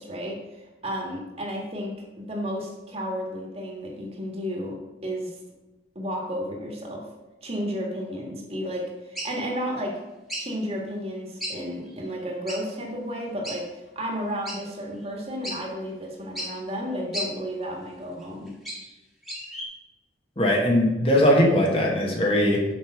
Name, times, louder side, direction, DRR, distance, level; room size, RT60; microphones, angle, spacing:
voice 1, 0.0-4.8 5.0-5.4 6.0-7.1 7.4-10.0 10.4-18.5, equal, 35° right, -1 dB, 1.8 m, -32 dB
sound 1, 9.2-9.4 10.3-10.5 11.4-11.6 11.9-12.0 12.5-12.6 13.4-13.6 14.5-14.6 15.1-15.2 15.4-15.6 16.4-16.5 17.1-17.3 18.2-18.9 19.2-19.6, equal, ahead, 1.7 m, -33 dB
voice 2, 20.4-22.6, left 1 dB, 30° left, -1 dB, 1.4 m, -20 dB
6.5 x 5.4 x 6.3 m, 1.0 s
head